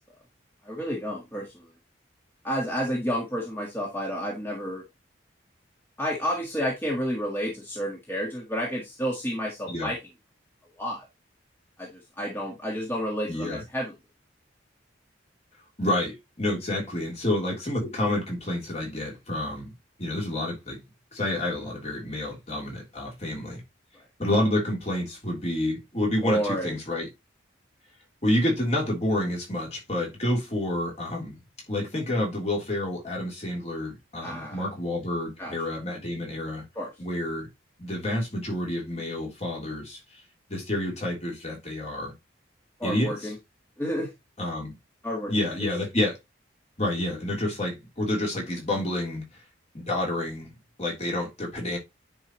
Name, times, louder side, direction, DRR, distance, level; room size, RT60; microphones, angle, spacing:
voice 1, 0.6-1.7 2.4-4.8 6.0-10.0 10.8-11.1 11.8-13.9 26.2-26.7 34.2-34.6 35.4-35.6 36.7-36.9 42.8-43.3 43.8-44.1 45.0-45.3, equal, 10° left, 1.5 m, -30 dB
voice 2, 13.3-13.6 15.8-19.7 20.0-20.8 21.1-23.6 24.2-27.1 28.2-31.4 31.7-36.6 37.0-37.5 37.8-40.2 40.5-42.1 42.8-43.3 44.4-44.7 45.3-46.2 46.8-49.4 49.7-50.5 50.8-51.8, left 1 dB, 35° left, 3.2 m, -29 dB
9.6 x 4.6 x 3.0 m
head